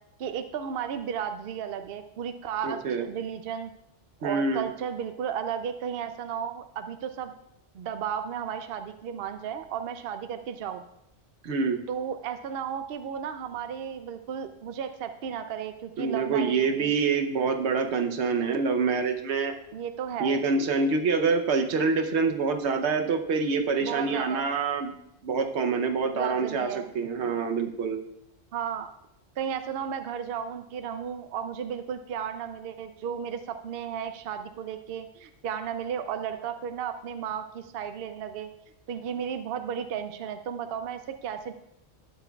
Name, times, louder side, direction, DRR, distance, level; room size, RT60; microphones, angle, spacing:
voice 1, 0.2-3.7 4.2-7.3 7.7-10.8 11.9-16.9 19.7-20.4 23.8-24.5 26.1-27.3 28.5-28.9 29.4-38.5 38.9-41.5, right 8 dB, 65° right, 8 dB, 0.7 m, -34 dB
voice 2, 2.6-3.1 4.2-4.7 11.4-11.8 16.0-19.5 20.2-24.9 25.2-28.0, right 4 dB, 80° right, 6 dB, 1.1 m, -26 dB
12.0 x 9.0 x 2.3 m, 0.79 s
omnidirectional pair, 1.1 m